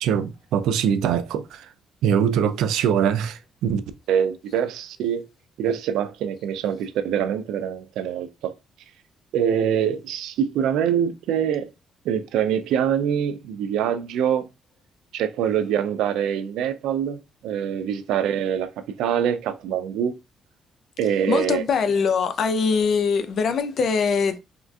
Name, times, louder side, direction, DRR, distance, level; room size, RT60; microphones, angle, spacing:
voice 1, 0.0-1.7 2.0-3.8 4.1-5.3 5.6-8.9 9.3-11.7 12.0-14.5 15.1-20.2 21.0-21.6, right 8 dB, 90° right, 0.3 m, -24 dB
voice 2, 21.3-24.4, left 5 dB, 60° left, 0.4 m, -22 dB
3.6 x 2.4 x 2.2 m
cardioid pair, 90°, 0 cm